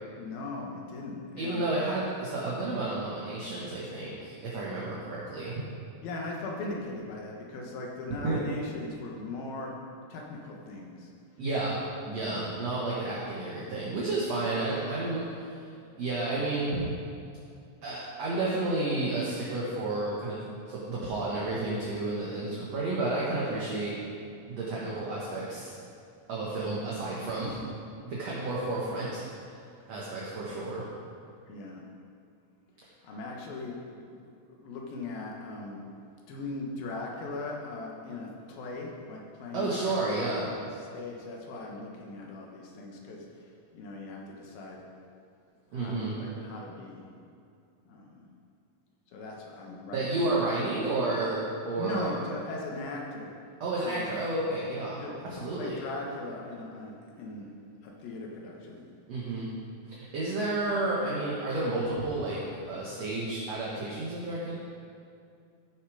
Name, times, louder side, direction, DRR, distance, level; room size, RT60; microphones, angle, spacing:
voice 1, 0.2-1.6 6.0-9.8 10.1-11.1 31.5-31.9 33.0-33.8 34.1-34.2 34.5-35.8 36.3-40.7 40.9-43.2 43.7-44.8 45.7-47.1 47.9-48.2 49.1-50.4 51.8-53.3 53.8-54.2 55.0-57.5 57.8-58.8, left 2 dB, 85° left, -1 dB, 3.2 m, -39 dB
voice 2, 1.4-5.5 8.2-8.4 11.4-11.8 12.1-15.6 16.0-16.9 17.8-23.9 24.5-25.7 26.3-27.6 28.0-29.2 29.9-30.8 39.5-40.5 45.7-46.2 49.9-52.1 53.6-55.0 55.2-55.8 59.1-59.5 59.9-62.4 62.7-64.5, right 2 dB, 55° right, -6 dB, 2.2 m, -31 dB
14.5 x 6.8 x 5.0 m, 2.5 s
omnidirectional pair, 4.1 m